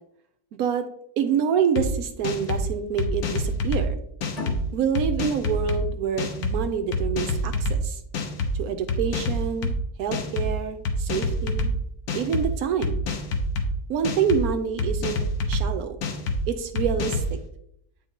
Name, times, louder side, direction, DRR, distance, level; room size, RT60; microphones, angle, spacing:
voice 1, 1.2-4.0 4.7-8.0 8.5-9.7 10.0-11.7 12.1-13.0 13.9-15.2 15.5-16.0 16.5-17.4, right 7 dB, 75° right, 8 dB, 1.0 m, -27 dB
sound 1, 1.8-1.9 2.2-2.6 3.0-3.8 4.2-4.6 5.0-5.8 6.2-6.5 6.9-7.8 8.1-8.5 8.9-9.7 10.1-10.5 10.9-11.7 12.1-12.4 12.8-13.7 14.0-14.4 14.8-15.6 16.0-16.4 16.8-17.3, left 3 dB, 75° left, 1.3 m, -27 dB
sound 2, 4.3-7.6, left 2 dB, 30° left, 1.1 m, -40 dB
8.3 x 4.4 x 2.8 m, 0.75 s
omnidirectional pair, 1.6 m